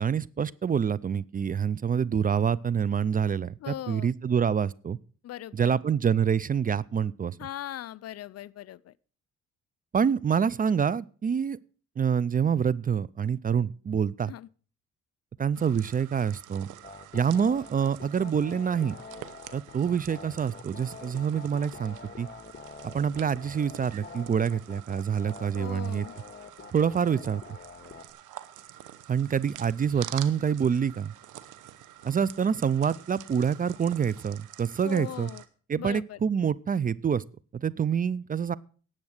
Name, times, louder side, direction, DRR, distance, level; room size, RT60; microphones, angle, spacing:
voice 1, 0.0-5.0 5.5-7.4 9.9-11.6 12.0-14.3 15.4-16.7 17.1-18.9 19.5-22.3 22.8-26.0 26.7-27.4 29.1-31.1 32.0-35.3 35.7-37.2 37.5-38.5, right 7 dB, 30° right, 0.4 m, -26 dB
voice 2, 3.6-4.1 5.2-5.7 7.4-8.9 14.3-14.5 25.6-26.1 34.8-35.4 35.8-36.2, left 12 dB, 55° left, 0.5 m, -39 dB
sound 1, 15.5-35.5, right 12 dB, 85° right, 1.0 m, -47 dB
sound 2, 16.8-28.1, left 4 dB, 35° left, 1.8 m, -45 dB
10.5 x 7.8 x 6.4 m
cardioid pair, 90°, 30 cm